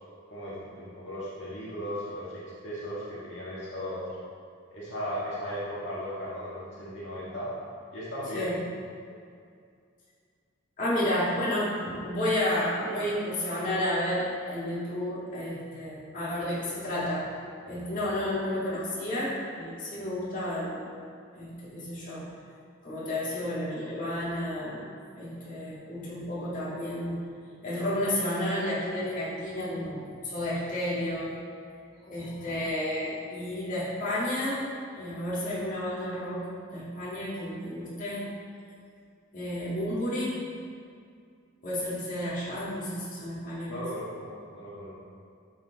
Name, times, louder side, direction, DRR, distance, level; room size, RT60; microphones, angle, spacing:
voice 1, 0.3-4.1 4.7-7.5 7.9-8.6 17.6-17.8 43.6-44.9, equal, 65° left, -9 dB, 1.8 m, -36 dB
voice 2, 10.8-17.4 17.7-20.9 21.3-22.3 22.8-24.8 25.2-27.2 27.6-31.3 32.0-34.6 35.0-38.3 39.3-40.4 41.6-43.8, left 1 dB, 40° left, -9 dB, 2.1 m, -31 dB
12.0 x 4.4 x 4.1 m, 2.3 s
head